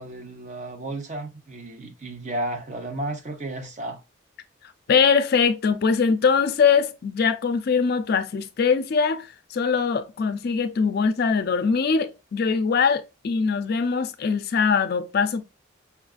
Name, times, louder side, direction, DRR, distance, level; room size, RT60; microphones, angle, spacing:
voice 1, 0.0-4.0, right 1 dB, 35° right, 0.7 m, -33 dB
voice 2, 4.9-15.4, left 5 dB, 50° left, 0.4 m, -22 dB
5.7 x 2.4 x 2.4 m
head